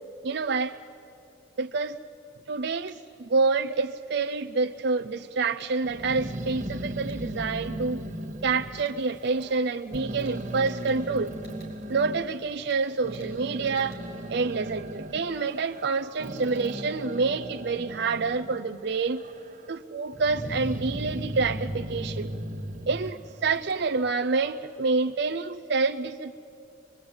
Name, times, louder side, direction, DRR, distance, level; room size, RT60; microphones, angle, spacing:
voice 1, 0.2-0.8 1.6-2.0 2.5-8.0 8.4-11.3 11.9-14.0 14.3-19.2 19.7-22.3 22.9-26.4, right 4 dB, 55° right, 5 dB, 0.5 m, -27 dB
sound 1, 2.9-3.0 5.6-5.7 7.1-7.2 8.9-9.0 10.3-10.4 10.7-11.0 11.4-11.7 12.7-12.8 13.2-13.3 13.7-14.1, equal, 45° left, 5.0 m, -55 dB
Growling, 5.8-9.6 9.9-12.2 12.8-18.6 19.0-19.7 20.1-23.9, right 1 dB, 35° right, 1.3 m, -37 dB
22.5 x 22.5 x 8.8 m, 2.8 s
head